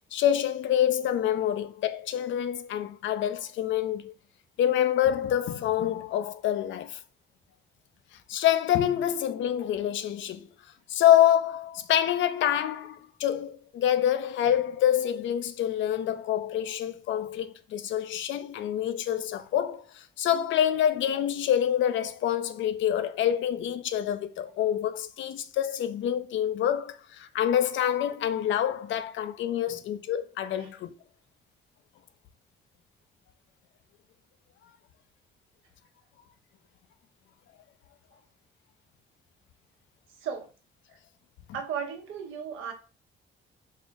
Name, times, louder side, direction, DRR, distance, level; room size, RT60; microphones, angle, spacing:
voice 1, 0.1-4.1 4.6-7.0 8.3-10.4 10.9-30.9, left 10 dB, 70° left, 0.5 m, -26 dB
voice 2, 40.2-40.5 41.5-42.7, right 7 dB, 85° right, 1.0 m, -35 dB
4.2 x 2.4 x 3.7 m
cardioid pair, 90°, 20 cm